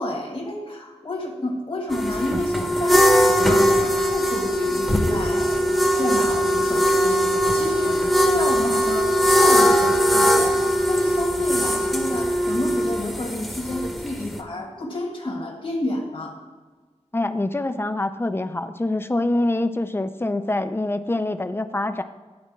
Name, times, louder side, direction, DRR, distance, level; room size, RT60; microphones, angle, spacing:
voice 1, 0.0-16.4, left 2 dB, 45° left, -1 dB, 1.5 m, -30 dB
sound 1, 1.9-14.4, equal, ahead, 1.0 m, -20 dB
voice 2, 17.1-22.0, left 2 dB, 20° left, 10 dB, 0.5 m, -25 dB
10.5 x 4.2 x 7.2 m, 1.3 s
wide cardioid pair, 95°, 12 cm